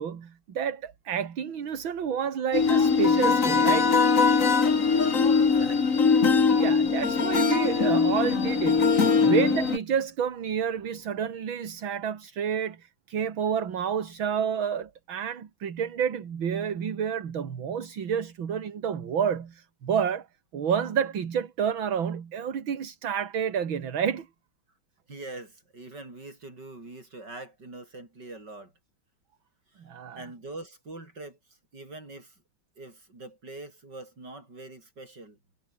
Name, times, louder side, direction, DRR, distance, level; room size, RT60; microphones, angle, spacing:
voice 1, 0.0-3.9 6.5-8.9 9.2-20.3 20.5-24.3 29.8-30.2, right 7 dB, 75° right, 2.7 m, -29 dB
sound 1, 2.5-9.8, left 5 dB, 40° left, 2.3 m, -21 dB
voice 2, 4.8-6.2 25.1-28.7 29.7-29.9 30.2-32.4 32.8-35.4, right 2 dB, 55° right, 7.7 m, -43 dB
omnidirectional pair, 2.2 m